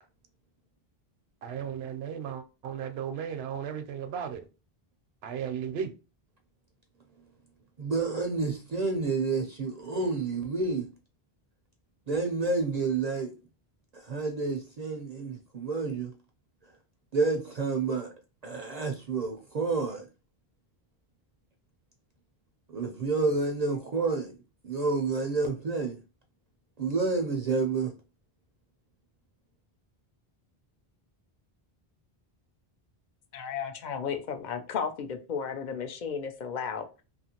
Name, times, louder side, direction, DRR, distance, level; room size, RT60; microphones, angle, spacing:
voice 1, 1.4-4.4 5.2-5.9, right 8 dB, 80° right, 0.8 m, -35 dB
voice 2, 7.8-10.9 12.1-13.3 13.9-16.1 17.1-18.1 18.4-20.1 22.7-24.3 24.6-26.0 26.8-27.9, right 4 dB, 55° right, 0.5 m, -29 dB
voice 3, 33.3-37.0, left 6 dB, 55° left, 0.6 m, -34 dB
2.8 x 2.5 x 2.8 m
omnidirectional pair, 1.0 m